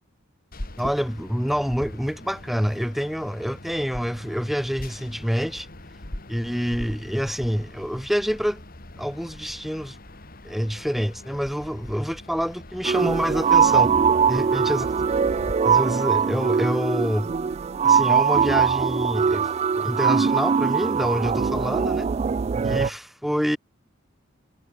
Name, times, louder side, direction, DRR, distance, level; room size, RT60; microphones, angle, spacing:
sound 1, 0.5-15.5, left 1 dB, 45° left, 2.5 m, -42 dB
voice 1, 0.8-5.7 6.3-8.6 9.0-10.0 10.4-13.9 14.3-14.9 15.6-17.3 17.8-19.5 19.8-22.1 22.6-23.6, equal, ahead, 1.6 m, -27 dB
sound 2, 12.8-22.9, right 6 dB, 30° right, 0.3 m, -21 dB
head